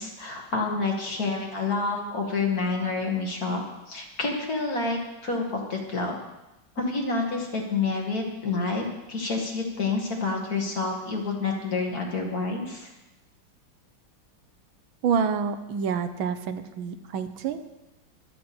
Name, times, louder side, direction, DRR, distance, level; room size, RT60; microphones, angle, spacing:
voice 1, 0.0-3.6 3.9-6.2 6.8-12.9, left 3 dB, 45° left, 0 dB, 2.6 m, -28 dB
voice 2, 15.0-17.7, right 6 dB, 75° right, 9 dB, 1.6 m, -28 dB
24.5 x 8.5 x 4.4 m, 0.98 s
omnidirectional pair, 2.3 m